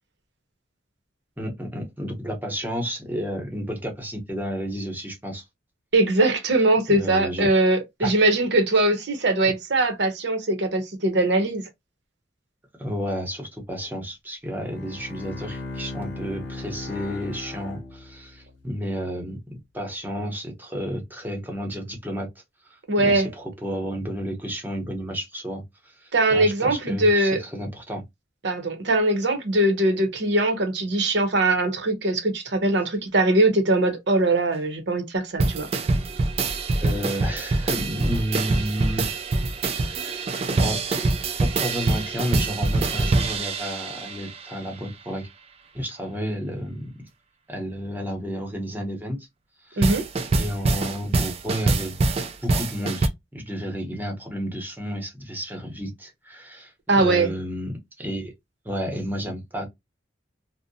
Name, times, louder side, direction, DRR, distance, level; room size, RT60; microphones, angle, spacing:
voice 1, 1.4-5.4 6.9-7.5 8.0-8.2 12.8-19.4 19.7-22.3 22.6-28.0 36.7-39.3 39.9-40.1 40.5-41.1 41.4-45.3 45.7-46.9 47.5-49.2 49.6-50.0 50.3-52.0 52.4-58.3 58.6-59.7, equal, 10° right, 0.8 m, -31 dB
voice 2, 5.9-11.7 22.9-23.3 26.1-27.4 28.4-35.7 49.8-50.1 56.9-57.3, right 2 dB, 65° right, 0.7 m, -21 dB
Bowed string instrument, 14.5-18.6, left 2 dB, 75° left, 0.8 m, -37 dB
sound 1, 35.4-44.6 49.8-53.1, right 3 dB, 30° right, 0.3 m, -24 dB
2.7 x 2.1 x 2.6 m
head